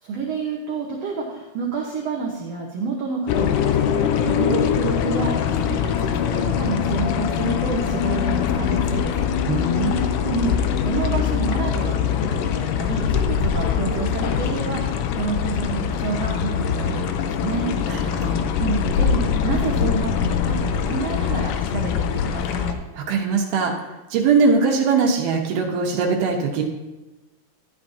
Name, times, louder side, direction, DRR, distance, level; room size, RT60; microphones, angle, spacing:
voice 1, 0.0-9.3 10.2-10.5 10.8-17.7 18.6-22.8, right 4 dB, 70° right, -1 dB, 1.5 m, -29 dB
sound 1, 3.3-22.7, left 8 dB, 80° left, 2.0 m, -23 dB
voice 2, 9.5-10.1 17.9-18.5 22.9-23.7 24.1-26.6, right 4 dB, 85° right, 0 dB, 2.9 m, -21 dB
13.0 x 10.0 x 2.7 m, 1.1 s
omnidirectional pair, 4.2 m